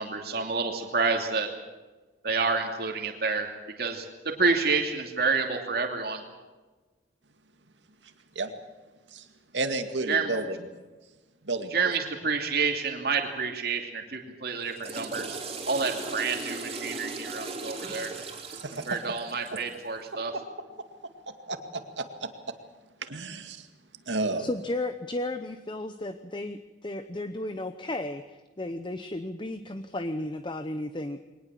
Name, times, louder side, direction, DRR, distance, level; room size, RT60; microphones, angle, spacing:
voice 1, 0.0-1.5 2.2-3.5 3.8-6.2 10.1-10.3 11.7-15.3 15.7-18.1 18.7-20.3, right 4 dB, 60° right, 3 dB, 2.7 m, -29 dB
voice 2, 9.5-10.6 11.4-11.7 18.5-18.9 21.5-22.3 23.1-23.7 24.1-24.5, right 2 dB, 85° right, 7 dB, 2.2 m, -31 dB
Water / Toilet flush, 14.6-19.8, right 3 dB, 35° right, 3.6 m, -38 dB
voice 3, 24.4-31.3, left 1 dB, 25° left, 10 dB, 0.8 m, -34 dB
22.5 x 19.5 x 7.6 m, 1.2 s
head